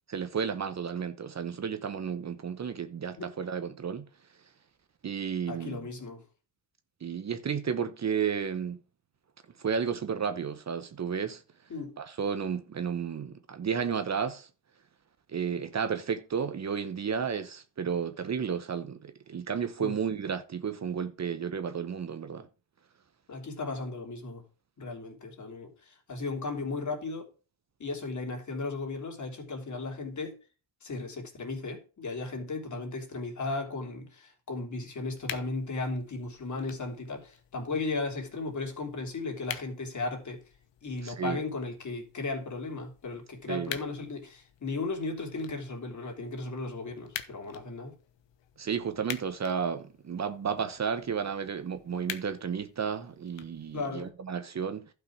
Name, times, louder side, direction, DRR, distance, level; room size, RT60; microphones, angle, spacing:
voice 1, 0.1-4.1 5.0-5.8 7.0-8.8 9.6-11.4 12.0-14.5 15.3-22.5 41.0-41.4 43.5-43.8 48.6-54.9, right 7 dB, 40° right, 1.0 m, -32 dB
voice 2, 5.5-6.2 11.7-11.9 19.8-20.0 23.3-24.4 24.8-27.3 27.8-30.4 30.8-40.4 40.8-48.0 53.7-54.1, left 3 dB, 40° left, 3.3 m, -36 dB
sound 1, 35.1-54.1, left 10 dB, 75° left, 1.3 m, -47 dB
12.0 x 5.5 x 6.0 m
cardioid pair, 110°, 43 cm